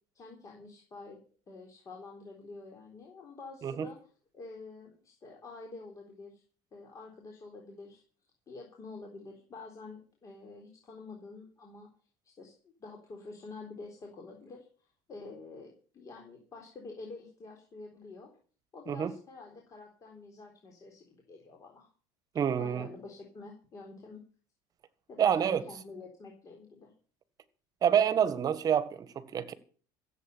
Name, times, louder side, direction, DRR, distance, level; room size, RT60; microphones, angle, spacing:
voice 1, 0.1-1.2 1.5-4.0 4.3-6.4 6.7-8.0 8.5-11.9 12.4-14.7 15.1-18.3 18.7-21.9 22.4-24.2 25.1-26.9, left 3 dB, 30° left, 3.8 m, -48 dB
voice 2, 22.3-22.9 25.2-25.6 27.8-29.5, right 8 dB, 35° right, 1.6 m, -27 dB
15.5 x 7.9 x 8.3 m
cardioid pair, 125°, 11 cm